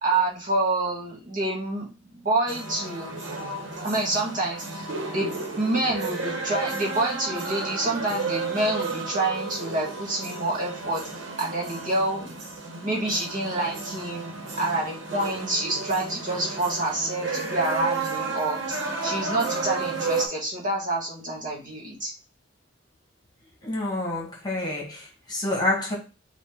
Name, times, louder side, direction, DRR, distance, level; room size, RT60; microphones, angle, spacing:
voice 1, 0.0-3.2 3.8-11.0 11.4-12.3 12.8-14.3 14.6-22.1, right 2 dB, 45° right, -3 dB, 1.8 m, -27 dB
sound 1, 2.5-20.3, right 4 dB, 75° right, 1.2 m, -32 dB
voice 2, 23.6-26.0, left 2 dB, 20° left, -2 dB, 1.4 m, -28 dB
5.3 x 2.4 x 3.7 m, 0.32 s
head